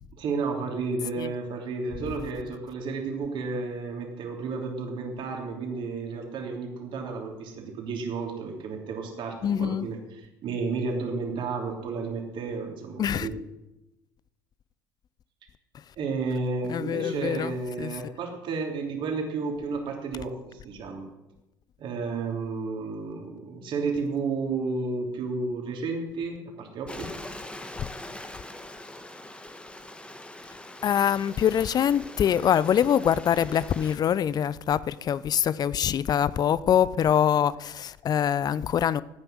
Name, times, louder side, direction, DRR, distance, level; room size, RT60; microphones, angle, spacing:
voice 1, 0.1-13.4 16.0-21.1 21.8-27.2, right 4 dB, 55° right, 3.2 m, -32 dB
voice 2, 9.4-9.9 13.0-13.3 16.7-17.9 30.8-39.0, left 9 dB, 40° left, 0.6 m, -24 dB
Stream, 26.9-34.0, left 1 dB, 10° left, 1.4 m, -42 dB
14.5 x 9.1 x 6.3 m
hypercardioid pair, 65°, 10 cm